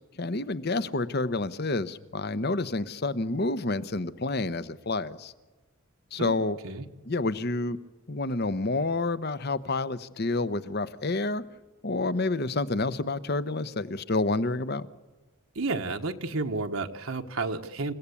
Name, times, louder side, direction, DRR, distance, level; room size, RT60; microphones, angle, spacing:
voice 1, 0.2-5.3 6.1-6.6 7.0-7.8 8.1-11.4 11.8-14.9, left 2 dB, 50° left, 14 dB, 0.9 m, -29 dB
voice 2, 15.5-17.9, right 3 dB, 75° right, 4 dB, 1.3 m, -31 dB
29.0 x 16.0 x 8.5 m, 1.2 s
head